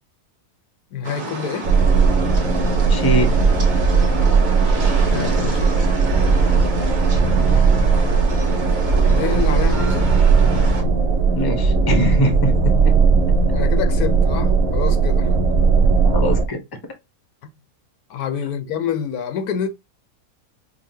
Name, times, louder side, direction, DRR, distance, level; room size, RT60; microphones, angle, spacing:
voice 1, 0.9-1.7 5.1-6.7 9.1-10.1 13.5-15.4 17.4-17.5 18.1-19.7, left 8 dB, 85° left, 1.3 m, -27 dB
sound 1, 1.0-10.8, right 2 dB, 35° right, 1.1 m, -30 dB
sound 2, 1.6-16.5, right 4 dB, 65° right, 1.0 m, -17 dB
voice 2, 2.9-3.3 11.3-12.8 16.1-16.6, equal, 20° left, 0.6 m, -21 dB
5.5 x 2.2 x 2.7 m
omnidirectional pair, 1.6 m